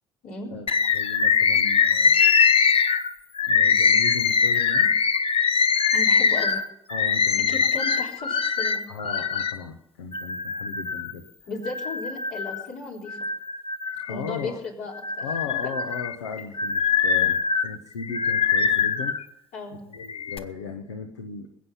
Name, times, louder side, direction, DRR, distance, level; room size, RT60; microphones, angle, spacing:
voice 1, 0.5-2.3 3.5-4.9 6.9-7.5 8.9-11.3 14.1-14.6 15.2-19.2 19.9-21.5, left 5 dB, 90° left, 4 dB, 0.9 m, -36 dB
Bird, 0.7-9.6 10.1-11.1 11.6-12.7 13.1-14.5 15.0-19.2 19.9-20.4, left 6 dB, 45° left, 1.0 m, -22 dB
voice 2, 5.9-6.6 7.5-8.8 11.5-13.2 14.1-15.6 19.5-19.9, left 3 dB, 70° left, -2 dB, 3.9 m, -35 dB
20.5 x 8.4 x 5.7 m, 0.81 s
hypercardioid pair, 50°, 14 cm